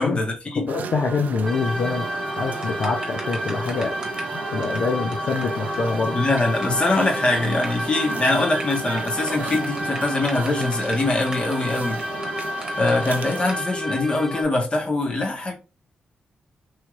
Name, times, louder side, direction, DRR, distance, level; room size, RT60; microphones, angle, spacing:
voice 1, 0.0-0.7 6.1-12.0 12.8-15.5, left 2 dB, 35° left, 1.3 m, -23 dB
voice 2, 0.6-2.1 2.4-4.0 4.5-6.2, left 4 dB, 65° left, 0.6 m, -25 dB
sound 1, 0.7-13.6, right 6 dB, 65° right, 0.4 m, -34 dB
sound 2, 1.5-14.4, left 1 dB, 10° left, 0.7 m, -31 dB
sound 3, 2.6-4.3 4.6-4.8 5.1-5.2 5.4-5.5 5.7-5.8 6.1-6.6 6.9-7.1 7.4-12.9 13.5-13.6, right 2 dB, 25° right, 1.2 m, -37 dB
3.2 x 2.8 x 2.4 m
cardioid pair, 70°, 3 cm